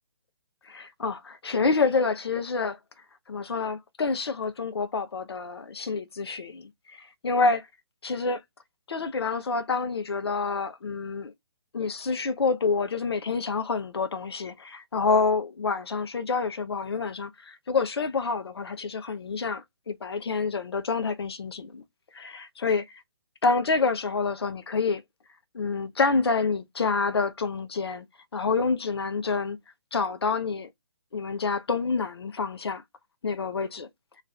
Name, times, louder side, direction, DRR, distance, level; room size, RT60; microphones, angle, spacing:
voice 1, 0.6-2.8 3.3-7.7 8.0-8.4 8.9-11.3 11.7-21.8 22.1-22.8 23.4-25.0 25.5-28.1 28.3-29.6 29.9-30.7 31.1-32.8 33.2-33.9, left 4 dB, 75° left, 0.5 m, -27 dB
2.4 x 2.4 x 3.1 m
figure-of-eight pair, 140°, 14 cm